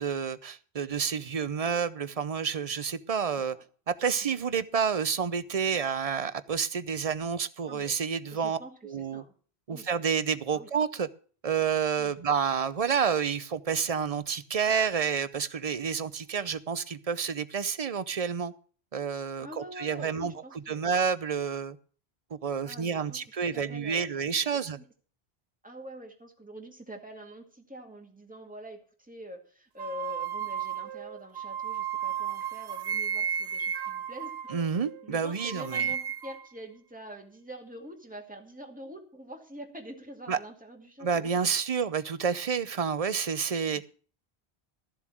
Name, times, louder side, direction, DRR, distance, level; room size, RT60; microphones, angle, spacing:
voice 1, 0.0-3.6 3.9-8.6 8.8-9.2 9.7-11.1 11.4-18.5 18.9-20.3 20.7-21.8 22.4-24.8 34.5-35.9 40.3-40.4 41.0-43.9, right 6 dB, 40° right, 0.7 m, -29 dB
voice 2, 8.3-9.3 9.7-9.9 10.5-10.7 12.0-12.2 19.4-20.9 22.6-23.2 23.5-24.2 24.5-24.9 25.6-34.6 35.0-41.5 43.7-43.9, equal, 10° right, 2.2 m, -45 dB
sound 1, 29.8-35.1 35.4-36.5, right 8 dB, 80° right, 1.0 m, -33 dB
14.0 x 7.4 x 6.0 m
omnidirectional pair, 1.1 m